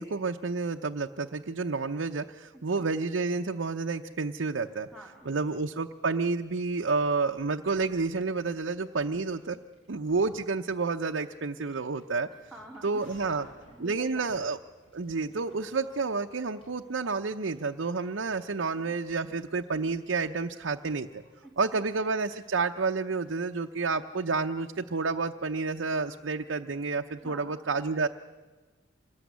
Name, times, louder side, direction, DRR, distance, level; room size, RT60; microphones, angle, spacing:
voice 1, 0.0-4.9 5.3-9.6 9.9-12.3 12.8-13.4 13.8-14.6 14.9-21.2 21.6-28.1, right 4 dB, 80° right, 3 dB, 0.7 m, -30 dB
voice 2, 4.9-5.6 12.5-14.3 18.7-18.9 21.4-22.0 27.1-27.5, equal, ahead, -2 dB, 2.8 m, -48 dB
sound 1, 6.0-25.2, equal, 30° left, 7.6 m, -65 dB
sound 2, 10.1-11.2 12.8-15.7, left 1 dB, 80° left, 4.1 m, -59 dB
26.0 x 20.0 x 9.5 m, 1.3 s
head